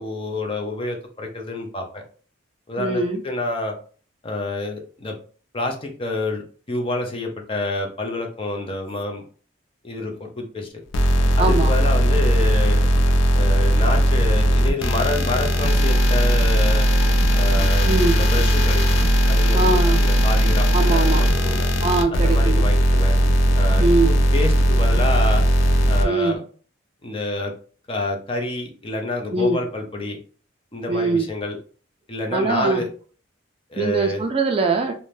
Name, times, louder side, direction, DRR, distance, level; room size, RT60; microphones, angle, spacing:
voice 1, 0.0-2.0 2.7-3.7 4.2-5.2 5.5-9.2 9.8-10.8 11.3-12.9 13.3-16.9 17.3-19.0 19.3-21.7 22.1-23.2 23.5-25.4 25.9-26.4 27.0-27.5 27.9-30.2 30.7-31.6 32.1-32.9 33.7-34.2, left 2 dB, 25° left, 3 dB, 0.5 m, -28 dB
voice 2, 2.8-3.2 11.4-11.7 17.9-18.2 19.5-20.1 20.7-21.2 21.8-22.7 23.8-24.1 26.0-26.4 29.3-29.6 30.9-31.3 32.3-32.8 33.8-34.9, right 3 dB, 30° right, 4 dB, 0.3 m, -21 dB
sound 1, 10.9-26.0, equal, 80° left, 0.5 m, -18 dB
2.6 x 2.1 x 3.2 m, 0.41 s
head